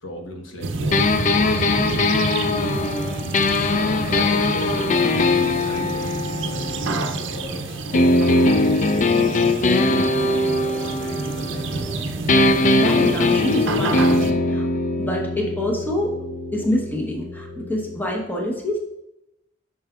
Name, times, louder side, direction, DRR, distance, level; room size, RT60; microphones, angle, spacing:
voice 1, 0.0-11.9, equal, 70° left, 2 dB, 1.2 m, -37 dB
sound 1, 0.6-14.3, right 3 dB, 65° right, 0.6 m, -29 dB
sound 2, 0.9-7.5 7.9-12.0 12.3-18.0, left 2 dB, 40° left, 0.4 m, -21 dB
voice 2, 12.5-14.6 15.0-16.2 16.5-18.8, left 1 dB, 10° left, -1 dB, 0.9 m, -26 dB
7.3 x 5.5 x 2.3 m, 0.89 s
head